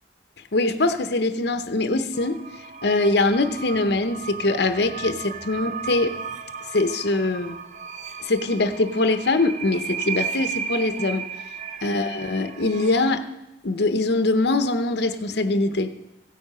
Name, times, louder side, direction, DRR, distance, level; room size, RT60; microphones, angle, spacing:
voice 1, 0.5-2.4 2.8-6.4 6.7-7.6 8.3-11.2 11.8-13.2 13.6-15.9, left 2 dB, 65° left, 9 dB, 0.9 m, -23 dB
sound 1, 2.1-13.1, right 6 dB, 45° right, 0.7 m, -35 dB
16.0 x 8.8 x 5.5 m, 0.98 s
head